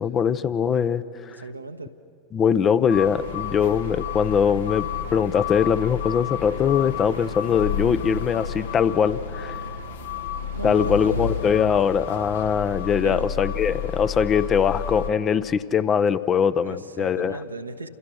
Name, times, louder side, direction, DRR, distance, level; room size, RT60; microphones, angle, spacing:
voice 1, 0.0-1.4 2.3-9.6 10.6-17.4, left 7 dB, 25° left, 15 dB, 0.7 m, -22 dB
voice 2, 1.4-1.9 10.5-11.2 13.0-13.3 16.6-17.9, right 3 dB, 80° right, 6 dB, 1.2 m, -36 dB
sound 1, 2.9-15.1, left 7 dB, 65° left, 1.4 m, -31 dB
29.0 x 28.0 x 6.3 m, 2.4 s
figure-of-eight pair, 90°, 0 cm